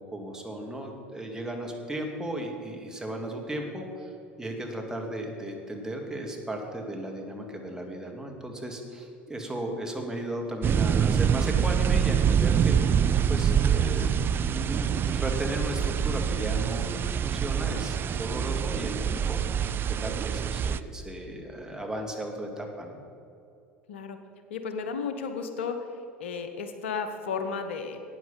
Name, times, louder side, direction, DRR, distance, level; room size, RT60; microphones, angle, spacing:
voice 1, 0.0-4.1 4.4-23.0, right 1 dB, 10° right, 1 dB, 2.2 m, -35 dB
sound 1, 10.6-20.8, right 8 dB, 35° right, 0.4 m, -25 dB
voice 2, 24.5-25.8 26.2-28.0, left 5 dB, 75° left, 7 dB, 1.0 m, -33 dB
13.0 x 9.1 x 5.7 m, 2.8 s
hypercardioid pair, 75°, 6 cm